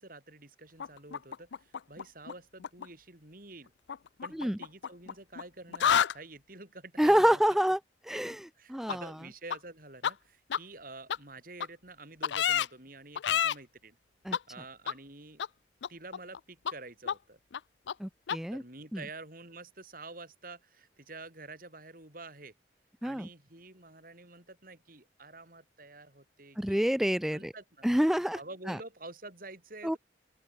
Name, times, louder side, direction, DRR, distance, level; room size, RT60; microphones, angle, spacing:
voice 1, 0.0-3.7 4.2-7.4 8.5-14.0 14.5-15.4 15.9-17.4 18.5-22.5 23.0-26.8 27.3-27.9 28.3-30.0, right 2 dB, 50° right, 6.6 m, -48 dB
sound 1, 0.8-2.3 2.6-2.9 3.9-5.4 5.7-6.1 8.9-9.0 9.5-9.6 10.0-10.1 10.5-10.6 11.1-11.2 11.6-11.7 12.2-12.7 13.2-13.5 14.3-14.4 14.9-15.0 15.4-15.5 15.8-16.4 16.7-16.8 17.1-17.2 17.5-17.6 17.9-18.0 18.3-18.4, left 8 dB, 90° left, 0.5 m, -29 dB
voice 2, 7.0-7.8 8.1-9.0 14.3-14.4 18.0-18.6 18.9-19.0 23.0-23.3 26.6-27.5 27.8-28.4 28.7-28.8 29.8-30.0, equal, ahead, 0.3 m, -27 dB
open air
head